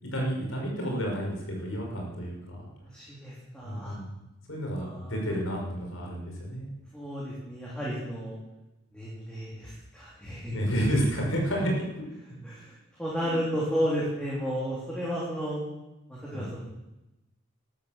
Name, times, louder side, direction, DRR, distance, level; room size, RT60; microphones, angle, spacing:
voice 1, 0.0-2.7 3.6-4.1 4.5-6.7 10.5-11.8 12.3-12.5 13.2-13.4 16.3-16.5, equal, 75° left, 0 dB, 5.7 m, -30 dB
voice 2, 2.8-4.0 4.7-5.2 6.9-8.4 8.9-10.5 12.4-12.7 13.0-15.6 16.1-16.6, equal, 5° left, -7 dB, 3.7 m, -33 dB
13.0 x 12.5 x 7.4 m, 0.96 s
head